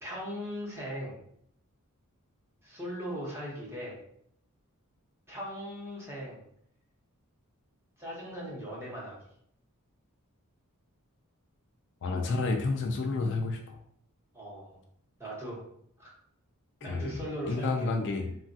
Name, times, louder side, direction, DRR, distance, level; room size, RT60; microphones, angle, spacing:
voice 1, 0.0-1.2 2.6-4.0 5.3-6.4 8.0-9.2 14.3-14.8 15.2-15.6 16.0-16.1 16.8-17.9, equal, 10° right, -6 dB, 0.9 m, -39 dB
voice 2, 12.0-13.8 16.8-17.2 17.5-18.3, left 3 dB, 55° left, 3 dB, 0.3 m, -30 dB
2.9 x 2.4 x 2.6 m, 0.68 s
head